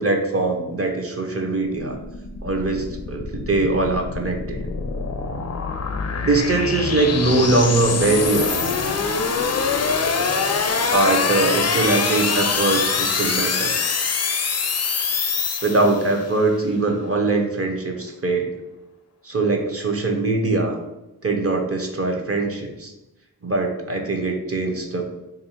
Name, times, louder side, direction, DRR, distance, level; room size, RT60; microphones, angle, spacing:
voice 1, 0.0-2.0 2.4-4.6 6.2-8.6 10.9-13.8 15.6-18.5 19.2-20.8 21.2-22.9 23.4-25.0, right 2 dB, 35° right, 2 dB, 0.7 m, -22 dB
sound 1, 1.7-16.2, left 5 dB, 40° left, 0.5 m, -24 dB
3.1 x 2.6 x 4.3 m, 0.97 s
wide cardioid pair, 50°, 39 cm